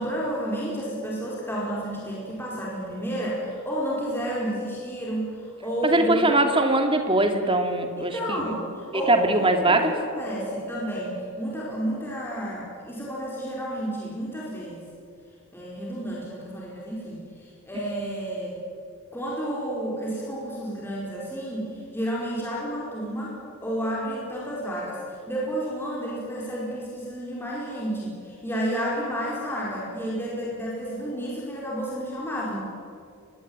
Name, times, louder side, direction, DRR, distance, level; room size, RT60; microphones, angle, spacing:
voice 1, 0.0-6.5 8.0-14.8 15.5-18.6 19.1-32.6, right 1 dB, 10° left, -5 dB, 4.8 m, -31 dB
voice 2, 5.8-8.5 8.9-9.8, right 2 dB, 25° right, 5 dB, 2.4 m, -22 dB
23.5 x 20.5 x 8.8 m, 2.4 s
head